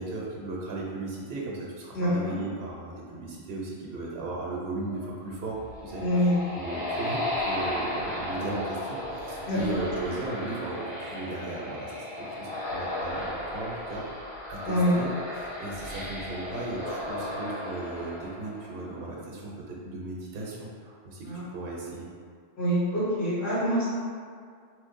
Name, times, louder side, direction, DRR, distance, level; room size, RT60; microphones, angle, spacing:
voice 1, 0.0-22.1, right 2 dB, 70° right, -3 dB, 0.9 m, -36 dB
voice 2, 1.9-2.3 6.0-6.4 9.5-9.8 14.7-14.9 21.2-21.4 22.6-23.9, equal, 85° left, -11 dB, 1.7 m, -25 dB
sound 1, 4.9-11.3, right 1 dB, 50° left, 1.7 m, -45 dB
sound 2, 5.5-19.1, left 1 dB, 65° left, 1.4 m, -35 dB
3.1 x 2.2 x 3.6 m, 2.1 s
omnidirectional pair, 1.0 m